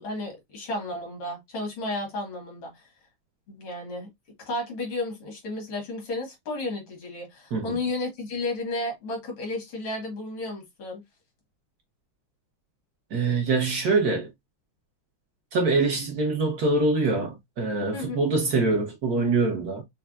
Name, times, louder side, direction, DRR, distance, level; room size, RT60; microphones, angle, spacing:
voice 1, 0.0-2.9 3.5-4.1 4.5-11.0 17.9-18.2, left 2 dB, 85° left, 2.5 m, -33 dB
voice 2, 13.1-14.3 15.5-19.8, right 3 dB, 55° right, 1.3 m, -24 dB
5.5 x 2.3 x 2.3 m
omnidirectional pair, 2.3 m